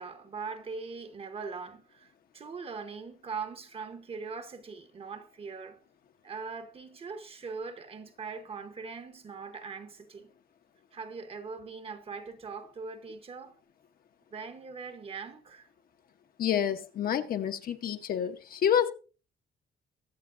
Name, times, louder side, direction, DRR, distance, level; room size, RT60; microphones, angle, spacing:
voice 1, 0.0-5.8 6.2-10.3 10.9-13.6 14.3-15.7, right 5 dB, 30° right, 1.0 m, -41 dB
voice 2, 16.4-18.9, left 9 dB, 55° left, 0.9 m, -28 dB
22.0 x 7.9 x 2.5 m
cardioid pair, 155°, 18 cm